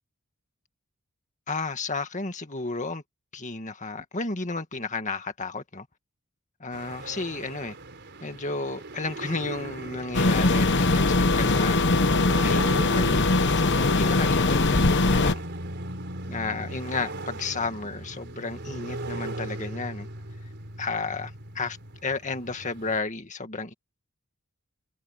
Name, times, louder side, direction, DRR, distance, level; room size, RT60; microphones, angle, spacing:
voice 1, 1.5-3.0 3.3-5.9 6.6-7.8 8.2-11.0 11.3-11.8 12.4-15.4 16.3-20.1 20.8-23.7, left 3 dB, 35° left, 2.0 m, -32 dB
sound 1, 6.7-23.0, right 2 dB, 50° right, 4.4 m, -39 dB
sound 2, 10.1-15.3, left 2 dB, 50° left, 1.1 m, -21 dB
head